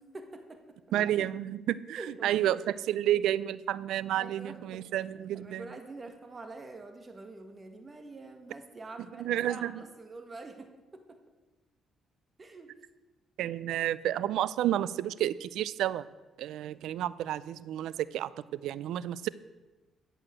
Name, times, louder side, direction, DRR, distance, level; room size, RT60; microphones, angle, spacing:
voice 1, 0.0-0.8 1.9-2.6 4.2-4.9 5.3-11.2 12.4-12.7, right 3 dB, 30° right, 7 dB, 1.8 m, -46 dB
voice 2, 0.9-5.7 9.2-9.7 13.4-16.0 16.4-19.3, right 12 dB, 85° right, 19 dB, 0.5 m, -30 dB
14.0 x 8.0 x 7.7 m, 1.2 s
cardioid pair, 90°, 0 cm